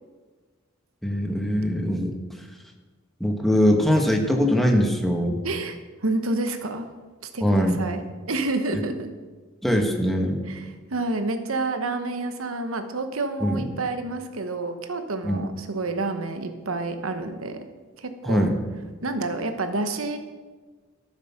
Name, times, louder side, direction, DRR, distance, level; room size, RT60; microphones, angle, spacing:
voice 1, 1.0-2.1 3.2-5.4 7.4-7.8 9.6-10.4 13.4-13.7 15.2-15.4 18.2-18.6, equal, ahead, 2 dB, 1.4 m, -22 dB
voice 2, 5.4-6.9 7.3-8.0 8.3-9.1 10.5-17.6 18.0-18.5 19.0-20.2, right 2 dB, 75° right, 7 dB, 1.1 m, -29 dB
13.0 x 7.3 x 5.9 m, 1.4 s
head